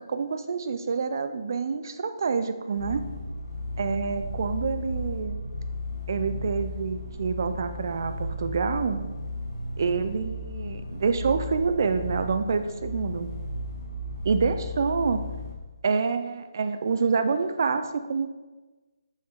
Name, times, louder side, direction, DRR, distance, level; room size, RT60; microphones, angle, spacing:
voice 1, 0.1-3.0 3.8-5.4 6.1-9.0 9.8-13.3 14.2-15.2 15.8-18.3, right 5 dB, 50° right, 9 dB, 0.8 m, -27 dB
sound 1, 2.8-15.5, left 1 dB, 60° left, 2.8 m, -35 dB
9.1 x 7.1 x 3.9 m, 1.2 s
figure-of-eight pair, 150°, 2 cm